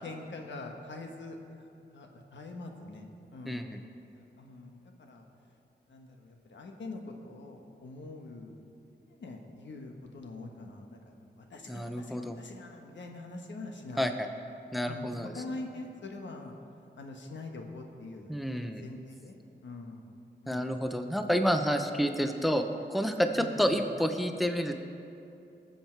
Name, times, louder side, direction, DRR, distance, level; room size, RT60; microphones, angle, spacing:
voice 1, 0.0-1.4 1.9-3.7 4.1-5.2 5.9-8.5 9.1-14.1 14.9-16.5 16.9-18.4 18.7-19.4 19.6-20.0 20.4-20.8 21.8-21.9 23.4-23.8, left 2 dB, 90° left, 2 dB, 1.3 m, -44 dB
voice 2, 3.5-3.8 11.7-12.4 14.0-14.3 14.7-15.3 18.3-18.8 20.5-24.8, equal, ahead, 6 dB, 0.7 m, -29 dB
18.5 x 7.3 x 4.6 m, 2.7 s
wide cardioid pair, 95°, 18 cm